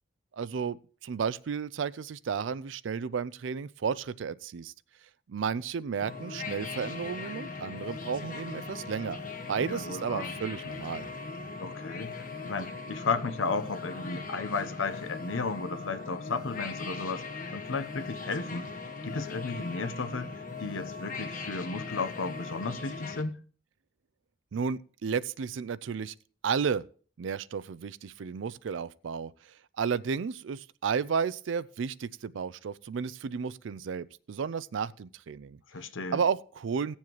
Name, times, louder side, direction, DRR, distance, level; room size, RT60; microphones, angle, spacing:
voice 1, 0.3-4.7 5.3-9.2 9.5-11.1 24.5-26.1 26.4-26.8 27.2-35.6 36.1-37.0, right 6 dB, 75° right, 0.4 m, -33 dB
sound 1, 6.0-23.2, left 4 dB, 45° left, 1.0 m, -39 dB
voice 2, 9.6-10.3 11.6-17.2 17.5-18.7 19.0-20.3 20.6-23.4 35.7-36.2, left 4 dB, 85° left, 0.8 m, -34 dB
18.5 x 7.2 x 3.0 m
head